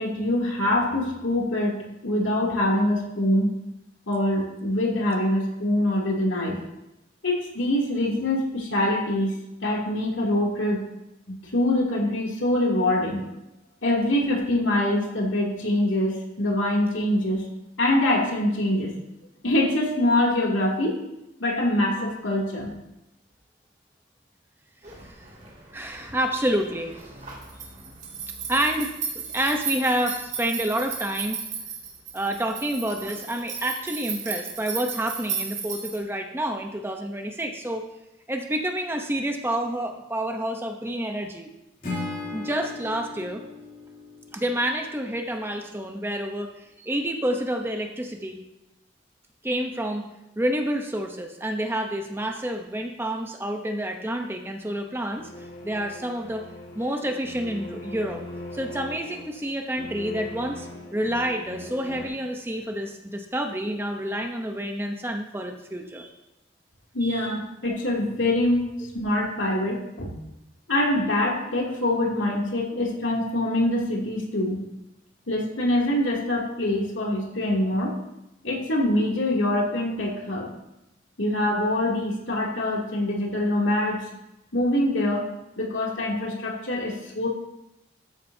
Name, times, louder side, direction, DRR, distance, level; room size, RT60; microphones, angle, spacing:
voice 1, 0.0-1.8 2.0-3.5 4.1-6.6 7.2-10.8 11.3-13.3 13.8-17.5 17.8-18.9 19.4-21.0 21.4-22.7 66.9-70.1 70.7-74.6 75.3-77.9 78.4-80.6 81.2-84.0 84.5-85.3 85.6-87.3, left 1 dB, 90° left, -2 dB, 2.7 m, -24 dB
sound 1, 24.8-36.0, right 6 dB, 40° right, 2.4 m, -35 dB
voice 2, 25.7-26.9 28.5-28.9 29.3-31.4 32.1-37.9 38.3-41.5 42.3-43.4 44.3-46.5 46.8-48.4 49.4-50.0 50.4-55.3 55.6-56.5 56.8-58.2 58.5-66.1 67.0-67.3, right 1 dB, 10° right, 4 dB, 0.8 m, -28 dB
Acoustic guitar / Strum, 41.8-45.0, left 3 dB, 45° left, 3.0 m, -36 dB
sound 2, 55.2-62.1, left 2 dB, 70° left, 1.9 m, -41 dB
13.5 x 10.0 x 2.8 m, 0.93 s
head